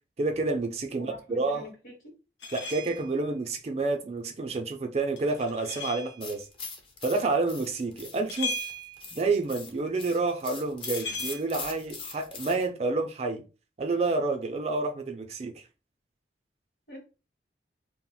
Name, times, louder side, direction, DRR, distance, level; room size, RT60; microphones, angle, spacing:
voice 1, 0.2-1.6 2.5-6.5 7.0-8.5 9.1-13.4 13.8-15.6, right 3 dB, 35° right, 0.4 m, -29 dB
voice 2, 1.0-2.1 16.9-17.0, left 1 dB, 50° left, 1.0 m, -45 dB
sound 1, 2.4-3.2 5.2-6.2 8.3-9.1 10.8-11.4, left 2 dB, 80° left, 0.6 m, -37 dB
sound 2, 6.2-12.7, left 4 dB, 30° left, 0.5 m, -41 dB
2.4 x 2.1 x 3.8 m
head